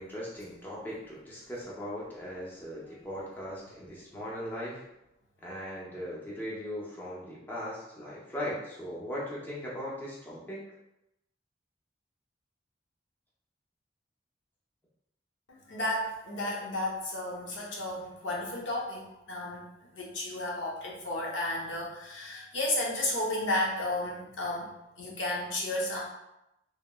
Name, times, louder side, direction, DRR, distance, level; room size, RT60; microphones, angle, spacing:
voice 1, 0.0-4.8 5.4-10.6, equal, 10° left, -6 dB, 0.6 m, -39 dB
voice 2, 15.5-19.6 19.9-24.7 25.0-26.0, left 1 dB, 90° left, -3 dB, 0.7 m, -33 dB
2.9 x 2.8 x 2.2 m, 0.88 s
head